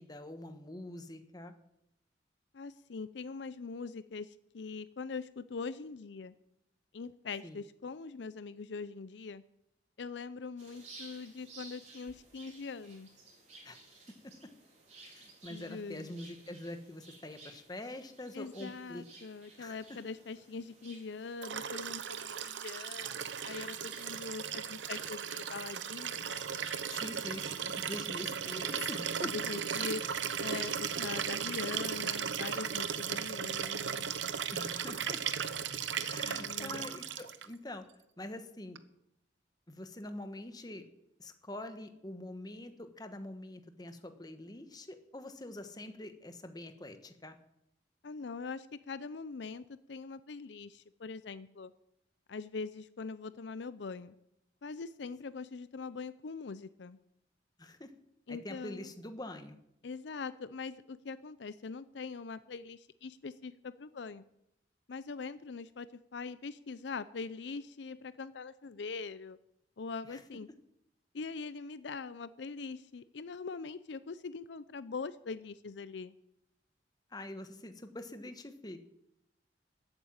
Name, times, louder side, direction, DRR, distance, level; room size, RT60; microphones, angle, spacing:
voice 1, 0.0-1.5 7.4-7.6 13.6-13.8 15.0-19.0 19.6-20.0 26.9-29.3 34.5-35.2 36.0-37.8 38.2-38.8 39.7-40.9 41.2-47.4 57.6-57.9 58.3-59.6 70.1-70.2 77.1-78.8, left 1 dB, 20° left, 8 dB, 1.3 m, -45 dB
voice 2, 2.5-6.4 6.9-9.4 10.0-13.1 15.5-16.1 18.3-26.5 29.2-30.0 30.4-34.1 36.2-36.9 48.0-51.7 52.3-54.1 54.6-57.0 58.3-58.9 59.8-64.2 64.9-69.4 69.8-70.5 71.1-76.2, left 4 dB, 75° left, 15 dB, 0.5 m, -42 dB
sound 1, 10.6-27.9, right 3 dB, 40° right, 4.5 m, -56 dB
Liquid, 21.4-37.5 38.7-38.8, right 7 dB, 90° right, 0.9 m, -36 dB
13.5 x 8.9 x 8.7 m, 0.81 s
head